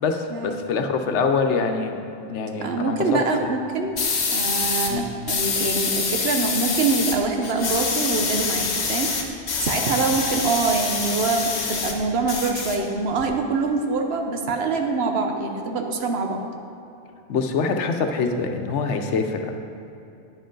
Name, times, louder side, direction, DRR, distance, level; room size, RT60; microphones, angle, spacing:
voice 1, 0.0-2.0 2.3-3.5 4.9-5.1 17.3-19.5, left 4 dB, 90° left, 5 dB, 1.0 m, -24 dB
voice 2, 2.6-3.9 4.3-9.1 9.6-16.4, right 4 dB, 65° right, 3 dB, 1.0 m, -24 dB
sound 1, 4.0-4.9 5.3-7.2 7.4-11.9 12.2-13.2, left 4 dB, 70° left, 1.2 m, -25 dB
9.5 x 7.8 x 3.8 m, 2.8 s
omnidirectional pair, 1.2 m